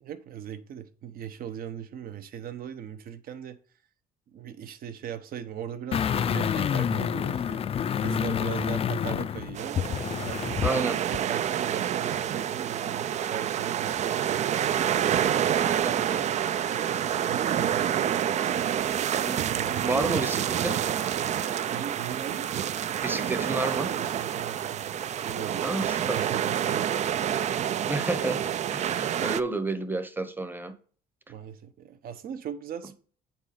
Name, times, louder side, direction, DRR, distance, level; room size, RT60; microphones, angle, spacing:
voice 1, 0.0-3.6 4.3-7.6 8.0-9.8 10.2-14.6 16.7-19.0 19.5-20.5 21.7-22.5 23.8-24.9 25.2-26.9 31.3-33.0, right 9 dB, 60° right, 0.9 m, -39 dB
sound 1, 5.9-10.8 11.1-11.2, left 8 dB, 35° left, 0.4 m, -28 dB
sound 2, 9.5-29.4, right 9 dB, 45° right, 0.4 m, -28 dB
voice 2, 10.6-11.0 15.7-16.3 19.2-20.8 23.0-23.9 25.6-26.3 27.9-28.4 28.7-30.7, right 2 dB, 10° right, 0.9 m, -31 dB
8.3 x 4.2 x 4.9 m
cardioid pair, 110°, 17 cm